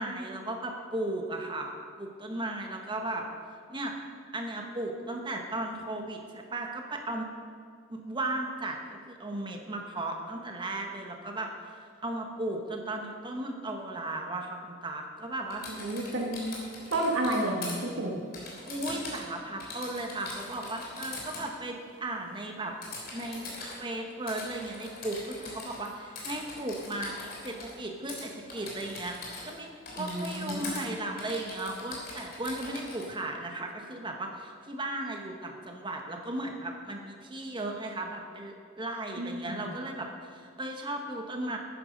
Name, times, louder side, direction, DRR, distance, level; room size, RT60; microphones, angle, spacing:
voice 1, 0.0-3.3 3.7-3.9 4.3-7.3 7.9-8.8 9.1-15.9 18.7-22.8 23.1-23.5 23.8-41.6, right 2 dB, 25° right, 2 dB, 1.3 m, -36 dB
Typing, 15.5-17.8 18.3-19.3 19.6-21.5 22.8-23.8 24.3-25.9 26.2-27.7 28.1-28.2 28.5-29.6 29.9-30.8 31.2-33.1, left 3 dB, 50° left, 3.4 m, -42 dB
voice 2, 15.8-16.5 16.9-18.1 30.0-30.8 39.2-39.7, right 1 dB, 85° right, 0 dB, 1.6 m, -31 dB
13.5 x 9.9 x 5.3 m, 2.1 s
head